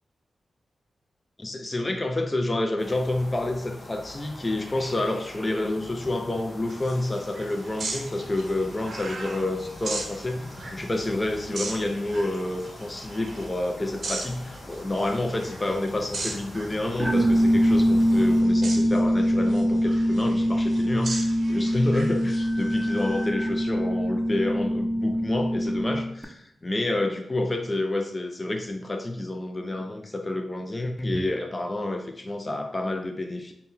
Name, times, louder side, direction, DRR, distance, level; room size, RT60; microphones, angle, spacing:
voice 1, 1.4-33.5, left 2 dB, 30° left, 4 dB, 0.5 m, -29 dB
sound 1, 2.8-18.4, left 1 dB, 55° left, 0.8 m, -43 dB
sound 2, 6.7-23.3, right 3 dB, 65° right, 0.7 m, -39 dB
sound 3, 17.0-26.2, equal, 15° right, 0.6 m, -23 dB
4.1 x 2.2 x 3.6 m, 0.73 s
cardioid pair, 55°, 0 cm